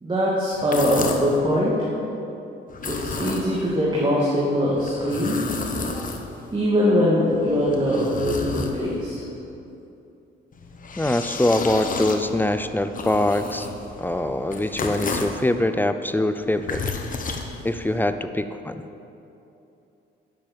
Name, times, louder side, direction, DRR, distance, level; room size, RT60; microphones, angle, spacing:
voice 1, 0.0-1.8 2.9-5.4 5.9-6.0 6.5-9.2, equal, 25° right, -6 dB, 2.4 m, -22 dB
sound 1, 0.5-1.4 2.7-3.8 4.8-6.6 7.3-9.1 10.5-15.4 16.4-18.0, left 4 dB, 45° left, 1.3 m, -32 dB
voice 2, 11.0-13.7 14.0-16.8 17.6-18.8, left 1 dB, 10° left, 10 dB, 0.6 m, -23 dB
11.0 x 7.5 x 7.6 m, 2.8 s
cardioid pair, 90°, 20 cm